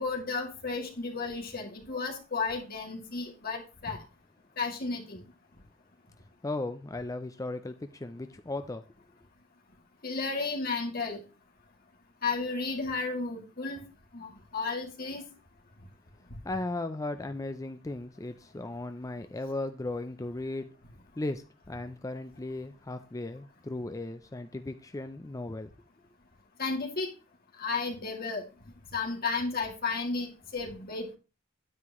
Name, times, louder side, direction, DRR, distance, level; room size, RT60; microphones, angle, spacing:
voice 1, 0.0-4.0 4.6-5.2 10.0-11.2 12.2-13.8 14.1-15.2 26.6-27.1 27.6-28.4 28.9-31.1, left 4 dB, 50° left, 2.4 m, -33 dB
voice 2, 6.4-8.8 16.4-20.7 21.2-25.7, left 2 dB, 15° left, 0.5 m, -36 dB
9.6 x 9.5 x 3.0 m
head